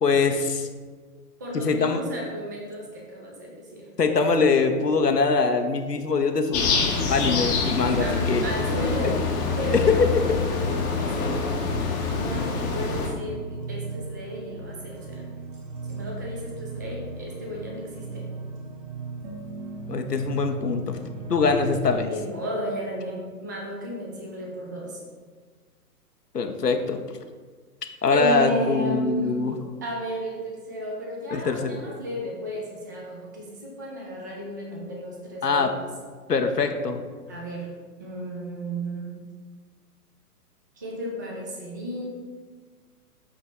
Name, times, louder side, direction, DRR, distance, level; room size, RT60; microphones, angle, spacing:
voice 1, 0.0-0.7 1.5-2.0 4.0-6.8 7.1-8.5 9.0-9.1 9.7-10.1 19.9-21.0 21.3-22.1 26.3-27.0 28.0-29.5 31.3-31.8 35.4-35.7 36.3-37.0, left 4 dB, 85° left, 5 dB, 0.9 m, -23 dB
voice 2, 1.4-3.9 8.0-9.2 9.6-11.7 12.1-15.3 15.9-18.3 22.1-25.0 28.1-29.4 29.8-35.9 37.3-37.7 38.0-39.1 40.8-42.0, equal, 15° right, -2 dB, 0.4 m, -34 dB
sound 1, 6.5-13.1, left 4 dB, 15° left, 0.8 m, -26 dB
sound 2, 12.2-22.0, right 2 dB, 50° right, 1.7 m, -37 dB
8.4 x 3.1 x 6.0 m, 1.5 s
figure-of-eight pair, 120°, 47 cm